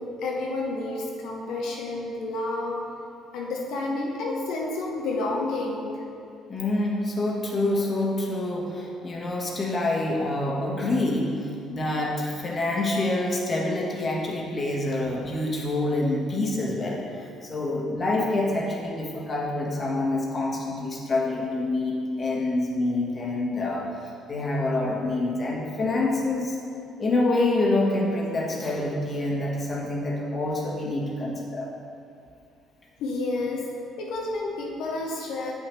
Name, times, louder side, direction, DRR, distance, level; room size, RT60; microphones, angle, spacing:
voice 1, 0.0-2.8 3.3-6.0 33.0-33.7 34.0-35.5, left 2 dB, 65° left, -1 dB, 0.8 m, -30 dB
voice 2, 6.5-11.3 11.7-23.9 24.3-26.6 27.0-31.7, left 2 dB, 35° left, -2 dB, 1.3 m, -26 dB
8.1 x 5.9 x 3.2 m, 2.5 s
figure-of-eight pair, 50°, 0 cm